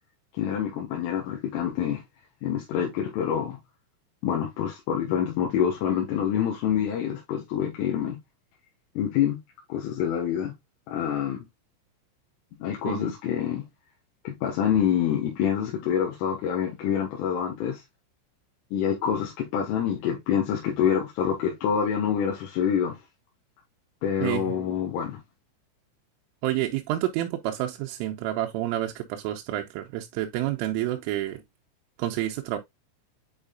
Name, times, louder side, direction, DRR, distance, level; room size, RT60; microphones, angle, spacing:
voice 1, 0.3-2.0 2.4-3.6 4.2-8.2 9.0-9.4 9.7-10.5 10.9-11.5 12.6-13.6 14.3-17.8 18.7-23.0 24.0-25.2, left 8 dB, 75° left, 3.9 m, -26 dB
voice 2, 24.2-24.6 26.4-31.4 32.0-32.6, right 14 dB, 85° right, 3.1 m, -29 dB
8.8 x 4.8 x 2.3 m
omnidirectional pair, 6.0 m